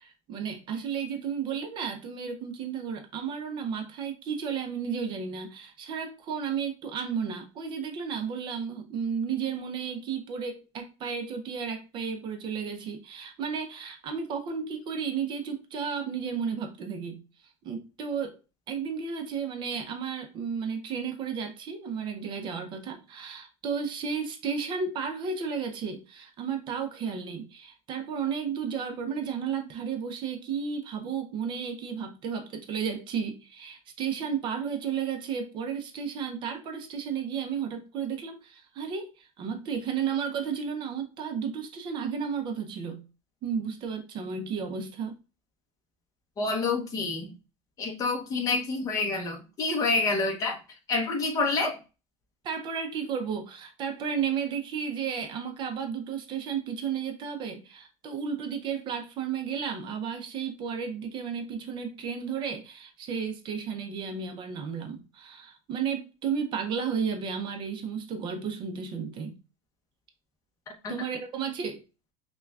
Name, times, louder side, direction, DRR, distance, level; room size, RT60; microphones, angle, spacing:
voice 1, 0.0-17.2 17.6-18.4 18.7-43.0 43.4-45.1 52.4-69.3 70.9-71.8, right 6 dB, 30° right, 0.5 m, -33 dB
voice 2, 46.4-47.3 47.8-50.6 50.9-51.8 70.8-70.9, left 3 dB, 20° left, 0.8 m, -28 dB
5.6 x 2.3 x 2.3 m
cardioid pair, 165°, 15 cm